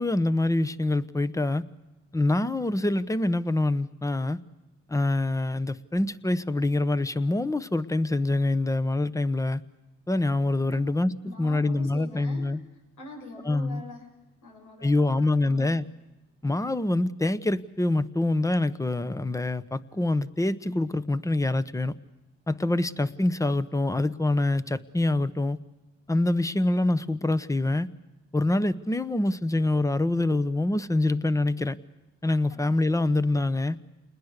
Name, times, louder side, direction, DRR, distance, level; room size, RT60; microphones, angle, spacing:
voice 1, 0.0-1.6 2.1-4.4 4.9-9.6 10.1-12.6 13.5-13.8 14.8-15.8 16.4-21.9 22.5-25.6 26.1-27.9 28.3-31.8 32.2-33.8, left 2 dB, 10° left, 14 dB, 1.0 m, -25 dB
voice 2, 10.6-12.5 13.0-15.7 32.5-32.8, left 1 dB, 85° left, 2 dB, 7.5 m, -44 dB
28.5 x 21.0 x 6.7 m, 1.0 s
cardioid pair, 90°, 30 cm